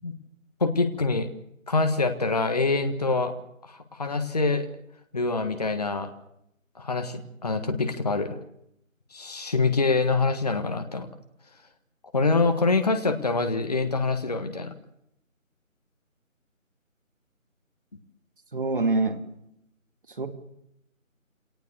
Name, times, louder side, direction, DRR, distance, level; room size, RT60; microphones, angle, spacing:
voice 1, 0.6-1.3 1.7-3.3 3.6-4.7 5.1-6.1 6.8-8.4 9.1-11.1 12.1-14.7, left 3 dB, 30° left, 7 dB, 1.6 m, -25 dB
voice 2, 18.5-19.3 20.2-20.3, right 3 dB, 40° right, 8 dB, 2.5 m, -25 dB
27.5 x 19.0 x 6.8 m, 0.77 s
figure-of-eight pair, 165°, 41 cm